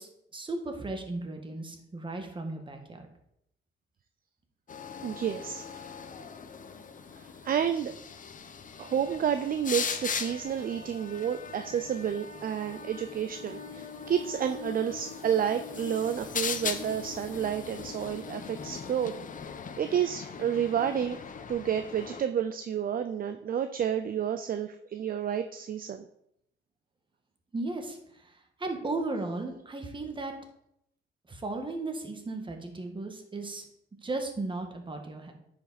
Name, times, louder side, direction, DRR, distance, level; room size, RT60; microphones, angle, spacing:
voice 1, 0.0-3.1 27.5-30.3 31.3-33.6 34.0-35.3, right 2 dB, 25° right, 4 dB, 1.7 m, -36 dB
sound 1, 4.7-22.2, left 6 dB, 40° left, 0.8 m, -39 dB
voice 2, 5.0-5.9 7.2-7.9 8.8-19.1 19.8-21.2 21.5-26.0, right 9 dB, 45° right, 8 dB, 0.5 m, -30 dB
9.8 x 5.2 x 4.2 m, 0.76 s
cardioid pair, 90°, 20 cm